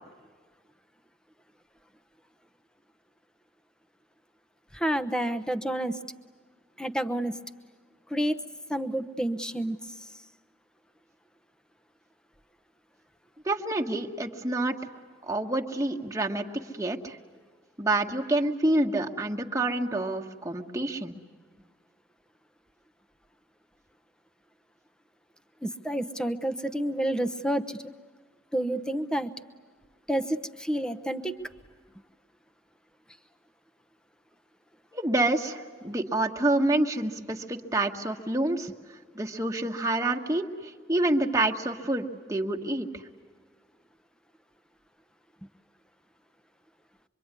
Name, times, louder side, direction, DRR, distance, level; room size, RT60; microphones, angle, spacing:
voice 1, 4.7-6.0 6.8-7.4 8.1-8.4 8.7-9.8 25.6-27.8 28.5-29.3 30.1-31.4, right 1 dB, 5° left, 8 dB, 0.9 m, -29 dB
voice 2, 13.4-14.8 15.2-16.5 16.7-17.2 17.8-21.1 34.9-38.7 39.1-42.9, right 2 dB, 15° right, 2 dB, 1.5 m, -27 dB
25.5 x 24.0 x 9.7 m, 1.5 s
head